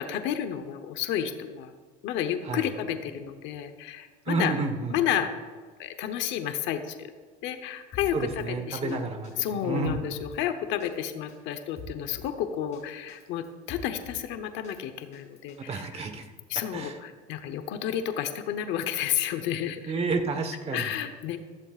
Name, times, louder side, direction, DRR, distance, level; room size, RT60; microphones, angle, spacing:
voice 1, 0.0-1.7 2.0-4.5 4.9-5.3 5.8-7.1 7.4-9.0 9.4-16.1 16.5-19.9 20.7-21.4, left 10 dB, 75° left, 7 dB, 1.0 m, -31 dB
voice 2, 4.3-5.0 8.1-10.0 15.7-16.3 16.7-17.0 19.8-20.9, right 4 dB, 30° right, 6 dB, 1.3 m, -30 dB
Drum kit, 7.9-8.5 8.9-9.0 9.2-10.4 10.8-11.0 11.3-12.3 12.7-12.8 13.1-14.3 14.6-15.6, left 2 dB, 35° left, 3.3 m, -44 dB
15.5 x 14.5 x 2.5 m, 1.5 s
cardioid pair, 140°, 19 cm